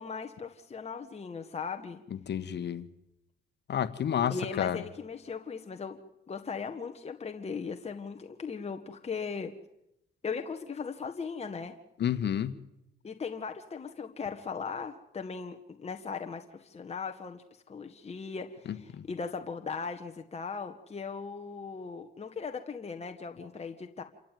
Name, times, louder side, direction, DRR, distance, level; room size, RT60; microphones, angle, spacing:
voice 1, 0.0-2.0 4.3-6.0 6.3-9.5 10.2-11.7 13.0-24.0, left 5 dB, 30° left, 5 dB, 1.7 m, -38 dB
voice 2, 2.3-2.9 3.7-4.8 12.0-12.5 19.0-19.1, left 9 dB, 60° left, 13 dB, 1.4 m, -30 dB
28.0 x 14.5 x 9.3 m, 0.86 s
cardioid pair, 90°, 20 cm